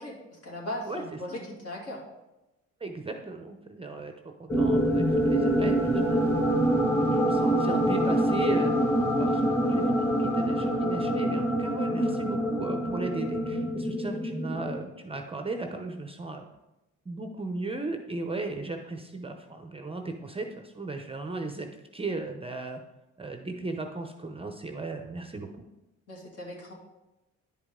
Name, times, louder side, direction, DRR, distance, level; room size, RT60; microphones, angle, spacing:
voice 1, 0.0-2.0 26.1-26.7, left 1 dB, 55° left, -2 dB, 2.6 m, -38 dB
voice 2, 2.8-4.1 4.4-6.5 7.0-8.7 9.2-16.5 17.1-21.7 21.9-22.8 23.2-25.5, right 3 dB, 20° right, 5 dB, 0.7 m, -36 dB
sound 1, 4.5-14.8, right 1 dB, 10° left, 1.5 m, -25 dB
10.0 x 5.1 x 3.7 m, 0.99 s
cardioid pair, 90°, 30 cm